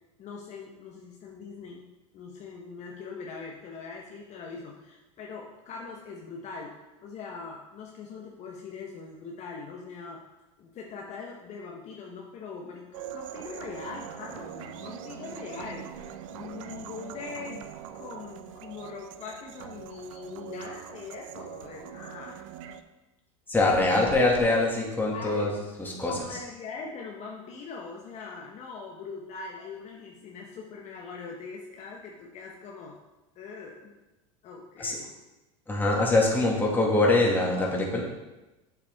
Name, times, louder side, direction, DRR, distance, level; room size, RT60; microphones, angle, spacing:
voice 1, 0.2-1.8 2.1-6.7 7.0-10.2 10.6-22.4 25.1-25.5 26.1-33.0 33.3-33.9 34.4-35.1, left 4 dB, 45° left, -1 dB, 1.2 m, -41 dB
sound 1, 12.9-22.8, right 10 dB, 75° right, 0.7 m, -42 dB
voice 2, 23.5-25.5 25.8-26.1 34.8-35.0 35.7-38.1, left 2 dB, 10° left, -3 dB, 2.2 m, -23 dB
8.2 x 7.1 x 3.6 m, 1.1 s
supercardioid pair, 110°, 17 cm